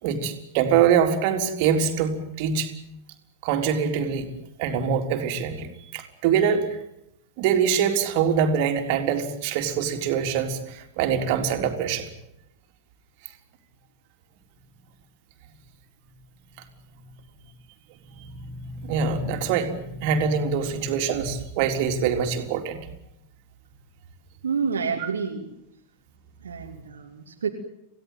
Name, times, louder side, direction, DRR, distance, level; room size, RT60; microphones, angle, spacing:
voice 1, 0.0-2.7 3.4-4.3 4.6-6.8 7.4-12.1 18.1-22.8, right 7 dB, 45° right, 5 dB, 3.8 m, -24 dB
voice 2, 24.4-25.5 26.4-27.5, right 5 dB, 70° right, 2 dB, 2.6 m, -29 dB
28.0 x 17.0 x 9.4 m, 0.82 s
figure-of-eight pair, 90°, 0 cm